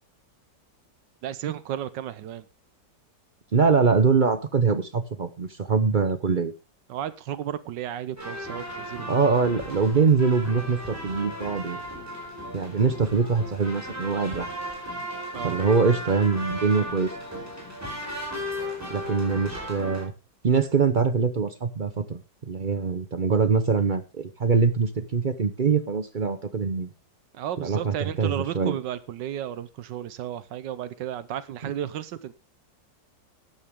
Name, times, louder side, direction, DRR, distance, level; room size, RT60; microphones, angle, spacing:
voice 1, 1.2-2.4 6.9-9.3 15.3-15.7 27.3-32.3, right 10 dB, 80° right, 1.4 m, -33 dB
voice 2, 3.5-6.5 9.1-11.8 12.5-14.5 15.4-17.1 18.9-20.1 20.4-22.2 22.5-26.9 27.6-28.8, right 5 dB, 50° right, 0.6 m, -23 dB
sound 1, 8.2-20.0, equal, 10° right, 4.4 m, -36 dB
13.0 x 10.0 x 3.6 m
omnidirectional pair, 1.9 m